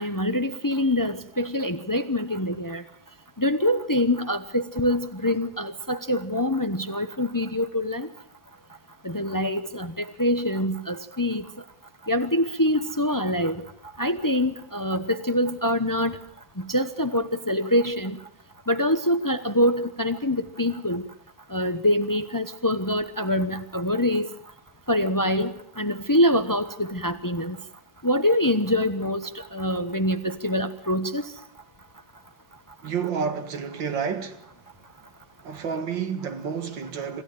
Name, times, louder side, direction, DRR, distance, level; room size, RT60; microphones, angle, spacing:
voice 1, 0.0-2.8 3.4-8.1 9.0-11.4 12.1-13.6 14.0-16.2 16.6-18.2 18.7-21.0 21.5-24.3 24.9-27.6 28.0-31.3, left 1 dB, 30° left, 0.3 m, -25 dB
voice 2, 32.8-34.5 35.4-37.2, right 6 dB, 70° right, 2.3 m, -30 dB
26.5 x 14.5 x 9.1 m
omnidirectional pair, 2.1 m